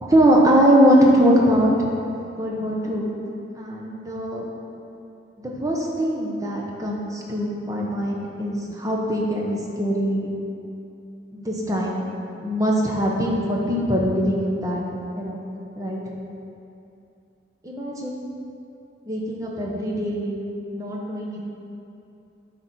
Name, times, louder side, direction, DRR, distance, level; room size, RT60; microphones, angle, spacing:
voice 1, 0.0-1.9 2.3-3.2 3.6-4.4 5.4-10.3 11.3-12.0 12.4-14.8 15.2-15.4 15.7-16.0 17.6-18.2 19.1-20.5 20.7-21.4, equal, 15° right, -3 dB, 0.9 m, -22 dB
9.8 x 4.1 x 4.6 m, 2.7 s
head